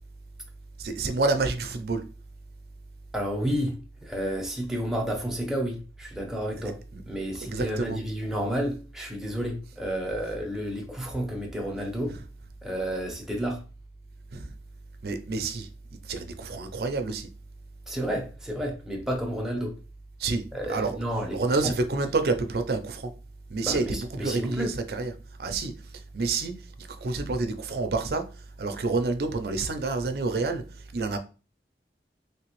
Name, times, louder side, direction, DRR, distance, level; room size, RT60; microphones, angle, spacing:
voice 1, 0.8-2.0 6.9-7.0 7.4-8.0 12.1-12.2 14.3-14.5 15.0-15.7 16.0-17.3 20.2-21.0 21.3-23.1 23.5-25.1 25.4-31.2, right 3 dB, 60° right, 0.5 m, -29 dB
voice 2, 3.1-6.8 7.1-12.2 12.6-13.6 17.9-19.8 20.5-21.7 23.6-24.7, equal, 5° right, 0.7 m, -31 dB
3.2 x 2.9 x 3.0 m
head